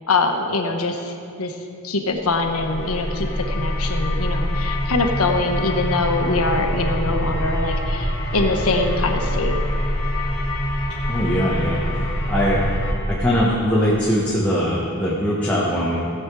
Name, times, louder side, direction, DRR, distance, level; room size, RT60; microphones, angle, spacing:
voice 1, 0.1-1.6 1.8-9.6, left 3 dB, 80° left, 4 dB, 1.2 m, -23 dB
sound 1, 2.3-12.9, left 1 dB, 65° left, 2.1 m, -24 dB
voice 2, 11.1-11.8 12.3-12.6 13.1-16.0, equal, 5° left, -6 dB, 1.3 m, -21 dB
17.5 x 8.0 x 4.8 m, 2.5 s
head